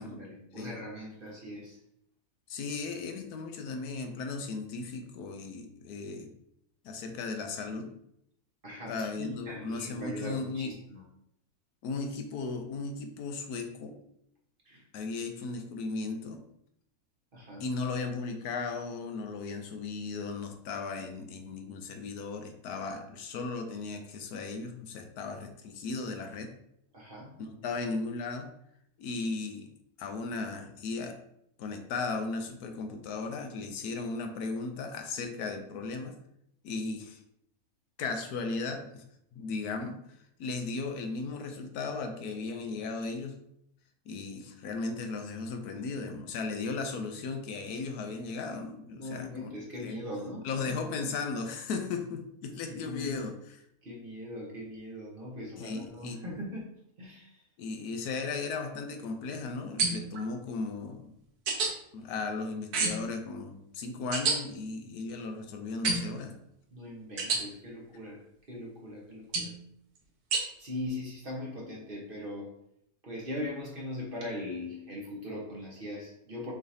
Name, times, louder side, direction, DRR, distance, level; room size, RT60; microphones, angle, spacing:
voice 1, 0.0-1.8 8.6-11.0 14.6-14.8 17.3-17.7 26.9-27.3 48.9-50.8 52.8-53.2 53.8-56.6 57.0-57.4 66.7-68.2 68.5-69.5 70.6-72.5 73.0-76.5, left 1 dB, 40° right, -3 dB, 1.2 m, -40 dB
voice 2, 2.5-6.3 6.8-7.9 8.9-10.7 11.8-14.0 14.9-16.4 17.6-26.5 27.4-28.5 29.0-29.7 30.0-31.2 31.6-36.2 36.6-37.2 38.0-39.0 39.3-40.0 40.4-43.4 44.1-49.5 49.8-50.0 50.4-53.6 55.6-56.2 57.6-61.1 61.9-66.4, left 4 dB, 85° left, 5 dB, 1.2 m, -36 dB
sound 1, 59.8-60.2 61.5-61.7 62.7-63.1 64.1-64.4 65.8-66.2 67.2-67.4 69.3-69.6 70.3-70.4, right 4 dB, 80° right, 1.4 m, -28 dB
6.1 x 3.2 x 2.7 m, 0.74 s
omnidirectional pair, 1.6 m